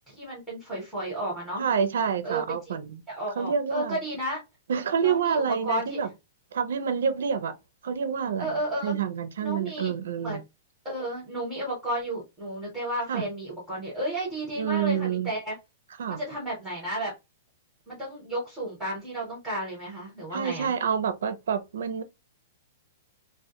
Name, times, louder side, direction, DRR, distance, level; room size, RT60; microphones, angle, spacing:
voice 1, 0.1-1.6 2.2-2.7 3.1-4.4 5.0-6.0 8.4-9.0 9.4-9.9 10.2-10.4 10.8-15.6 16.1-17.1 17.9-20.7, right 1 dB, 5° right, 0.8 m, -32 dB
voice 2, 1.6-3.0 3.4-4.0 4.7-6.1 6.5-7.6 7.8-10.4 13.1-13.2 14.6-15.3 16.0-16.2 20.3-22.0, right 7 dB, 70° right, 0.4 m, -28 dB
2.1 x 2.1 x 2.8 m
hypercardioid pair, 180°, 0 cm